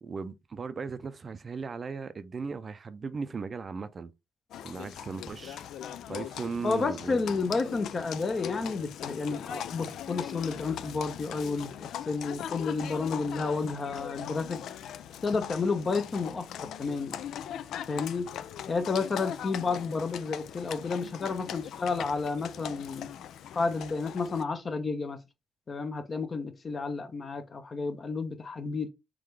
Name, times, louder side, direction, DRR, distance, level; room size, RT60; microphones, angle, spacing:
voice 1, 0.0-4.1 4.6-5.6 6.1-7.5, right 5 dB, 40° right, 0.5 m, -37 dB
Livestock farm animals working animals, 4.5-24.4, left 10 dB, 75° left, 0.3 m, -40 dB
voice 2, 6.6-14.6 15.2-17.2 17.9-18.3 18.7-23.1 23.5-25.2 25.7-28.9, left 4 dB, 40° left, 0.9 m, -31 dB
3.7 x 3.4 x 3.3 m
cardioid pair, 90°, 0 cm